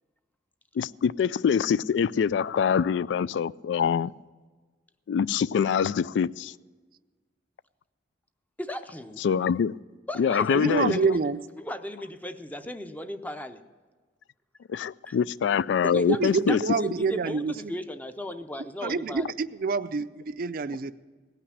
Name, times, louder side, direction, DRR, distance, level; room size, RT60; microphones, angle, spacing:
voice 1, 0.8-4.1 5.1-6.5 9.2-9.8 10.2-11.1 14.7-16.6, left 7 dB, 85° left, 0.3 m, -24 dB
voice 2, 8.6-9.2 10.1-11.3 11.6-13.6 15.0-15.2 15.8-19.3, equal, 10° left, 0.6 m, -36 dB
voice 3, 10.5-11.4 15.9-17.7 18.8-20.9, right 4 dB, 55° right, 0.5 m, -27 dB
17.5 x 5.9 x 9.6 m
head